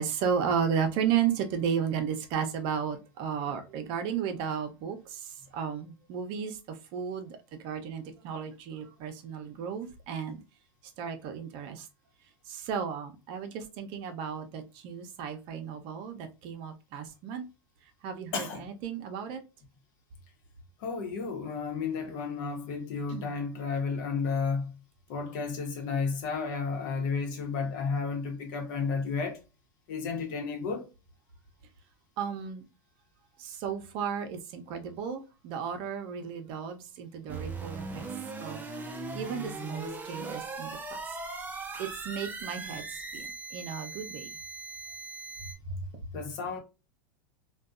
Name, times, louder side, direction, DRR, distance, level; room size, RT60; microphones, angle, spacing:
voice 1, 0.0-10.4 11.0-11.9 12.5-17.5 18.0-19.4 23.1-23.4 32.2-32.6 33.4-38.0 38.4-38.6 39.1-40.7 41.8-42.8 43.1-44.3 45.7-45.8, right 7 dB, 55° right, 0.6 m, -34 dB
voice 2, 18.3-18.7 20.8-24.7 25.1-29.4 29.9-30.9 46.1-46.6, left 5 dB, 65° left, 1.0 m, -32 dB
sound 1, 37.3-45.5, right 3 dB, 15° right, 0.5 m, -39 dB
2.6 x 2.3 x 2.4 m
supercardioid pair, 120°, 11 cm